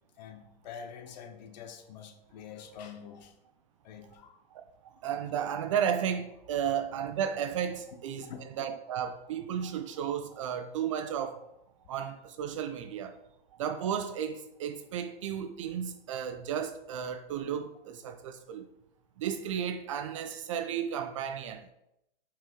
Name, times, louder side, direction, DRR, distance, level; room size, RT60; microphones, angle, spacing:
voice 1, 0.2-3.4 3.8-4.4 8.2-8.5, left 7 dB, 45° left, 0.9 m, -46 dB
voice 2, 4.5-8.3 8.6-11.4 11.9-13.2 13.6-18.7 19.2-21.7, right 8 dB, 35° right, 0.4 m, -33 dB
5.7 x 4.8 x 3.7 m
hypercardioid pair, 125°, 30 cm